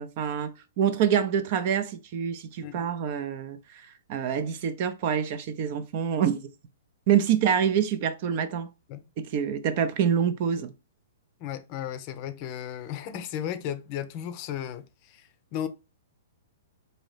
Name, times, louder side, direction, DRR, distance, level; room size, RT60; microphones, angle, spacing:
voice 1, 0.0-6.5 7.1-8.7 9.2-10.7, right 8 dB, 45° right, 0.6 m, -26 dB
voice 2, 11.4-15.7, left 10 dB, 40° left, 0.5 m, -35 dB
3.9 x 2.7 x 3.2 m
hypercardioid pair, 125°, 0 cm